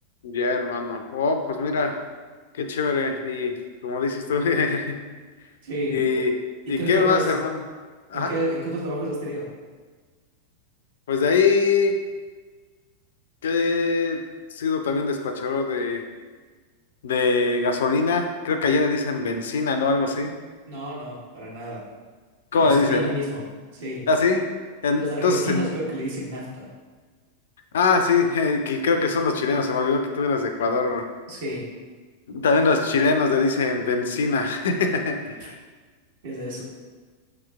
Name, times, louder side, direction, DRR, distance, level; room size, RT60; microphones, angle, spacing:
voice 1, 0.2-2.0 2.6-3.5 3.8-5.0 5.9-6.3 6.7-7.6 8.1-8.3 11.1-11.9 13.4-14.2 14.6-16.0 17.0-20.3 22.5-23.0 24.1-24.4 24.8-25.6 27.7-31.1 32.3-35.5, left 4 dB, 60° left, 6 dB, 0.3 m, -22 dB
voice 2, 5.6-6.0 6.7-7.3 8.1-9.5 20.7-21.9 22.5-23.4 23.7-24.1 25.0-26.7 31.3-31.7 35.4-35.5 36.2-36.6, right 1 dB, 55° right, -4 dB, 1.1 m, -30 dB
5.9 x 2.9 x 2.2 m, 1.4 s
figure-of-eight pair, 90°, 0 cm